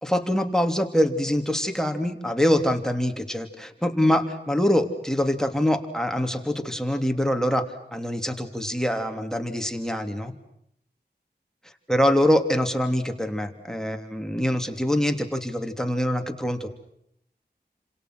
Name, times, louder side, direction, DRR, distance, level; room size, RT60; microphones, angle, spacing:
voice 1, 0.0-7.6 7.9-10.3 11.9-16.7, equal, 5° left, 5 dB, 3.0 m, -24 dB
30.0 x 27.0 x 6.2 m, 0.73 s
wide cardioid pair, 50°, 17 cm